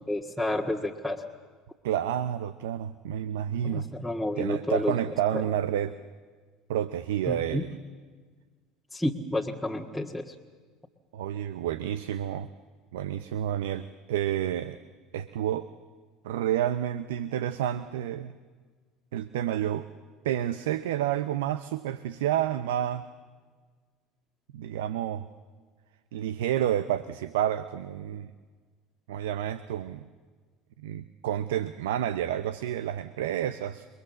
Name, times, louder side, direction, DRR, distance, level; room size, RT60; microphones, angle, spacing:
voice 1, 0.1-1.2 3.6-5.0 5.3-5.4 7.3-7.6 8.9-10.3, left 1 dB, ahead, 0 dB, 1.9 m, -30 dB
voice 2, 1.8-3.9 4.4-5.9 6.7-7.7 11.1-12.5 12.9-14.8 15.1-15.7 16.2-18.3 19.1-19.9 20.2-23.0 24.5-25.3 26.1-28.3 29.1-30.0 30.8-33.9, right 11 dB, 75° right, 13 dB, 0.7 m, -29 dB
28.5 x 22.0 x 7.6 m, 1.5 s
hypercardioid pair, 70°, 0 cm